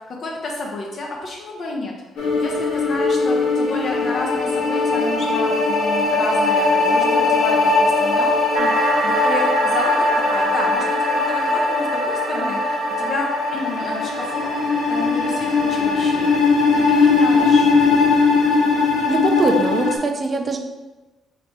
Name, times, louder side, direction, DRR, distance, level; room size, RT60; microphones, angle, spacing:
voice 1, 0.1-16.3 16.9-17.7 19.3-19.4, left 2 dB, 55° left, -1 dB, 0.7 m, -30 dB
sound 1, 2.2-20.0, left 3 dB, 80° left, 1.0 m, -19 dB
sound 2, 8.5-17.2, right 4 dB, 85° right, 0.3 m, -29 dB
voice 2, 19.1-20.6, right 3 dB, 35° right, 4 dB, 0.5 m, -21 dB
3.0 x 2.9 x 4.5 m, 1.1 s
cardioid pair, 90°, 0 cm